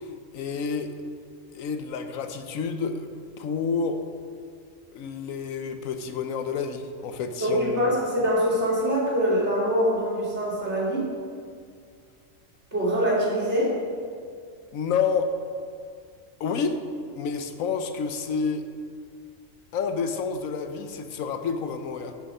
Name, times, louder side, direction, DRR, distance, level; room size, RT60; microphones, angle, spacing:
voice 1, 0.0-0.9 1.5-4.0 4.9-7.9 14.7-15.3 16.4-16.8 17.2-18.6 19.7-22.1, left 5 dB, 85° left, 7 dB, 1.2 m, -29 dB
voice 2, 7.4-11.1 12.7-13.7, equal, 55° right, -6 dB, 2.9 m, -24 dB
11.0 x 6.4 x 5.4 m, 2.2 s
omnidirectional pair, 1.4 m